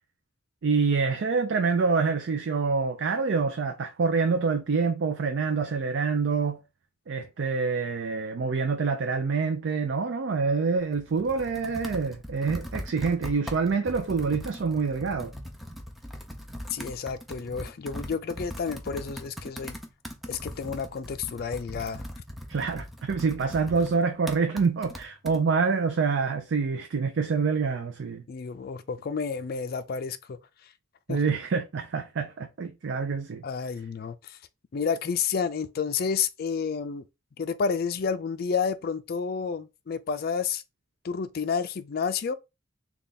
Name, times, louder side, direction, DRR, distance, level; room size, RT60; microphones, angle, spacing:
voice 1, 0.6-6.6 7.1-15.3 22.5-28.2 31.1-33.4, right 5 dB, 65° right, 0.4 m, -26 dB
Computer keyboard, 10.8-25.4, equal, ahead, 0.6 m, -40 dB
voice 2, 16.7-19.8 20.3-22.0 28.3-30.4 31.1-31.2 33.4-34.4 34.7-37.1 37.4-40.6 41.0-42.3, left 6 dB, 50° left, 0.4 m, -30 dB
3.4 x 2.3 x 3.9 m
head